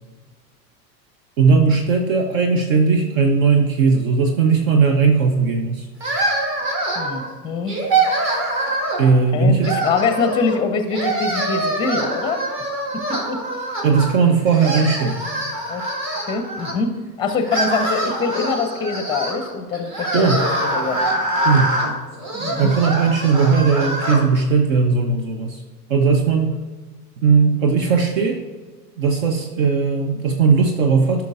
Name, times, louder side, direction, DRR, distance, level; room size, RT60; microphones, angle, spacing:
voice 1, 1.4-5.9 9.0-9.8 13.8-15.2 20.1-20.4 21.4-21.7 22.6-25.6 25.9-26.5 27.2-28.4 29.0-31.2, right 5 dB, 55° right, 4 dB, 0.9 m, -17 dB
sound 1, 6.0-7.3 7.7-9.1 9.6-10.6 10.9-14.1 14.5-16.7 17.3-24.2, right 2 dB, 35° right, 1.9 m, -24 dB
voice 2, 7.0-7.8 9.3-12.4 12.9-13.4 15.7-15.8 16.3-21.0 22.4-22.7, left 4 dB, 10° left, 8 dB, 0.6 m, -24 dB
12.5 x 5.8 x 2.5 m, 1.4 s
figure-of-eight pair, 85°, 50 cm